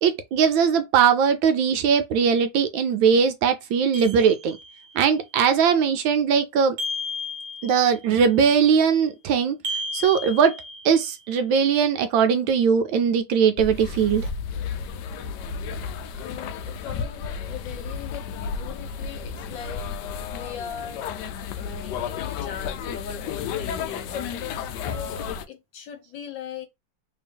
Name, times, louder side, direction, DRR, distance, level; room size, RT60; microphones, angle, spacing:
voice 1, 0.0-4.6 4.9-6.8 7.6-9.6 9.9-10.6 10.8-14.3, right 7 dB, 75° right, 1.2 m, -20 dB
sound 1, 3.9-4.9 6.8-8.1 9.6-11.2, left 2 dB, 55° right, 1.4 m, -33 dB
sound 2, 13.6-25.4, left 6 dB, 85° left, 0.9 m, -32 dB
voice 2, 16.1-19.8 20.3-21.0 21.6-24.3 24.8-26.7, left 7 dB, 65° left, 1.4 m, -39 dB
3.4 x 2.7 x 3.5 m
omnidirectional pair, 2.4 m